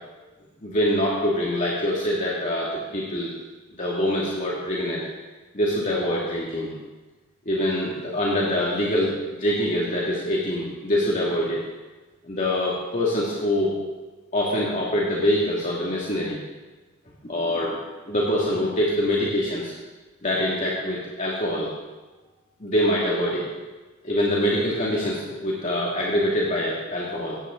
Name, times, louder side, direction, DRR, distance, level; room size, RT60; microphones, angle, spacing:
voice 1, 0.6-3.3 3.8-5.0 5.5-6.7 7.5-11.6 12.2-13.7 14.3-16.4 17.2-17.8 18.1-19.7 20.2-21.7 22.6-23.5 24.0-27.4, left 1 dB, 40° left, -5 dB, 2.4 m, -24 dB
18.0 x 16.5 x 3.9 m, 1.2 s
head